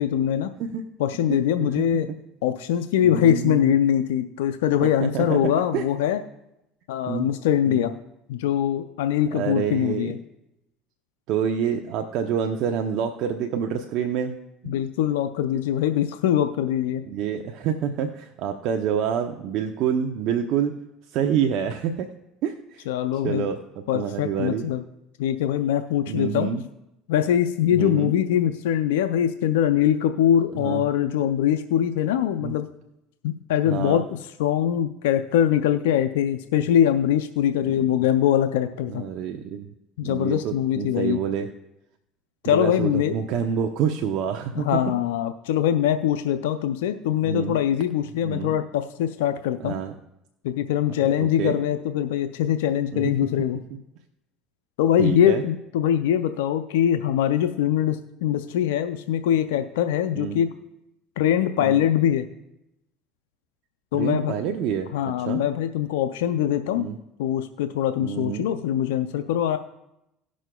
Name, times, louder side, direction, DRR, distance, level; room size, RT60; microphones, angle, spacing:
voice 1, 0.0-0.5 1.0-2.1 2.4-6.2 6.9-7.9 8.3-10.2 14.7-17.0 22.9-23.5 23.9-24.8 25.2-26.5 27.1-32.7 33.2-34.0 34.4-39.0 40.0-41.2 42.4-43.2 44.6-49.8 50.4-53.6 54.8-60.5 61.2-62.3 63.9-64.3 64.9-66.9 67.2-69.6, left 10 dB, 85° left, 9 dB, 0.4 m, -23 dB
voice 2, 1.3-1.8 3.0-3.7 4.8-5.9 7.1-7.3 7.7-7.9 9.3-10.1 11.3-14.4 14.6-14.8 17.1-20.7 21.1-22.1 22.4-22.8 23.2-23.6 23.9-24.7 26.1-26.6 27.7-28.1 30.5-30.8 32.4-32.5 33.7-34.0 38.9-39.7 40.0-41.5 42.4-44.8 47.2-47.6 48.2-48.5 49.6-49.9 51.0-51.6 52.9-53.1 55.0-55.4 60.1-60.4 61.6-61.8 63.9-64.9 65.3-65.4 66.7-67.0 68.0-68.5, right 8 dB, 65° right, 5 dB, 0.7 m, -27 dB
18.0 x 6.2 x 2.3 m, 0.87 s
supercardioid pair, 85°, 0 cm